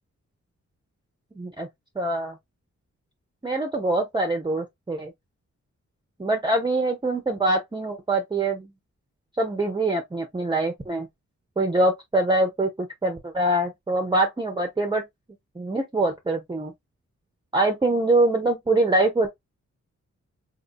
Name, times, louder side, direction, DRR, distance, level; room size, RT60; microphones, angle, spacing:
voice 1, 1.4-1.7 2.0-2.4 3.4-5.1 6.2-8.7 9.4-11.1 11.6-15.0 15.6-16.7 17.5-19.3, right 2 dB, 15° right, 0.7 m, -24 dB
4.3 x 2.7 x 2.3 m
wide cardioid pair, 100°, 29 cm